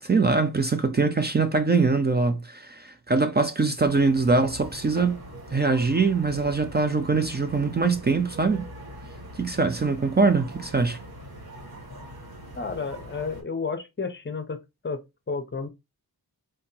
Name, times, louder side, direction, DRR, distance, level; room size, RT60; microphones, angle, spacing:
voice 1, 0.0-5.2 5.5-8.7 9.4-11.0, right 4 dB, 25° right, 0.5 m, -23 dB
sound 1, 3.8-13.4, right 1 dB, 75° right, 2.6 m, -42 dB
voice 2, 12.5-15.7, left 4 dB, 30° left, 0.7 m, -32 dB
4.2 x 3.7 x 2.8 m
wide cardioid pair, 135°, 37 cm